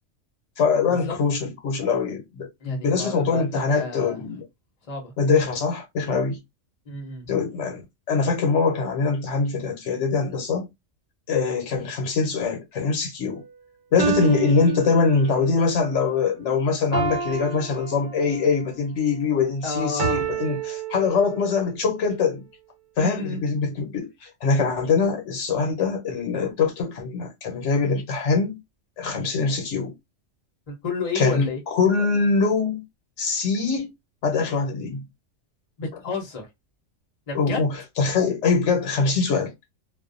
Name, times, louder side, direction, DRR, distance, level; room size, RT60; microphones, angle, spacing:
voice 1, 0.6-4.4 5.2-6.4 7.3-7.8 8.1-10.7 11.3-13.4 13.9-22.4 23.0-28.6 29.0-29.9 31.1-32.8 33.2-33.9 34.2-35.0 37.3-39.5, left 4 dB, 70° left, 1.0 m, -23 dB
voice 2, 2.6-4.2 4.9-5.1 6.9-7.2 19.6-20.3 23.0-23.4 30.7-31.6 35.8-36.5 37.3-37.6, left 3 dB, 35° left, 0.7 m, -30 dB
sound 1, 13.2-13.3 14.0-15.6 16.9-18.6 20.0-21.6, right 7 dB, 60° right, 1.0 m, -29 dB
2.4 x 2.2 x 2.5 m
omnidirectional pair, 1.3 m